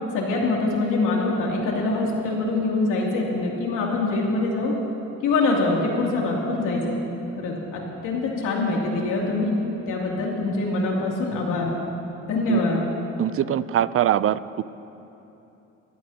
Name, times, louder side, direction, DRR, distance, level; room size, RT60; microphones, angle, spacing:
voice 1, 0.1-4.7 5.2-7.0 7.4-9.5 9.9-11.7 12.2-12.8, left 3 dB, 85° left, -2 dB, 2.8 m, -24 dB
voice 2, 13.2-14.6, right 11 dB, 45° right, 17 dB, 0.5 m, -22 dB
24.0 x 16.0 x 2.9 m, 3.0 s
cardioid pair, 90°, 30 cm